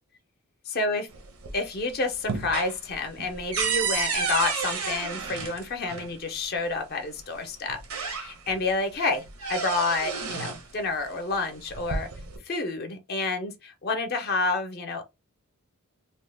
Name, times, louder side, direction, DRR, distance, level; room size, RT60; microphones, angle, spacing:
sound 1, 1.1-1.8 2.1-6.1 7.2-7.3 7.7-8.6 9.0-10.7 11.6-12.4, right 5 dB, 85° right, 0.8 m, -31 dB
voice 1, 1.5-12.1 12.4-15.0, left 3 dB, 45° left, 0.5 m, -29 dB
2.8 x 2.1 x 3.2 m
head